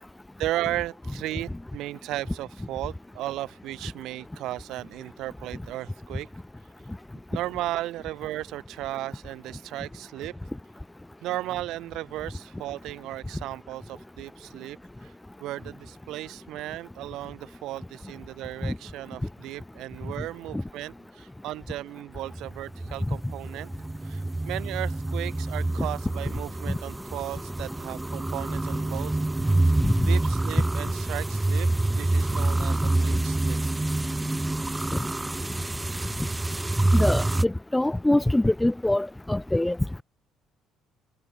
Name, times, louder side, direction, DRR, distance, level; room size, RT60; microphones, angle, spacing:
voice 1, 0.4-6.3 7.3-10.4 11.2-15.1 15.4-23.7 24.0-29.2 30.0-31.7 31.9-33.6, right 15 dB, 75° right, 2.1 m, -35 dB
sound 1, 22.3-37.4, right 2 dB, 10° right, 1.6 m, -27 dB
voice 2, 36.9-39.8, left 1 dB, 10° left, 1.3 m, -24 dB
cardioid pair, 100°, 0 cm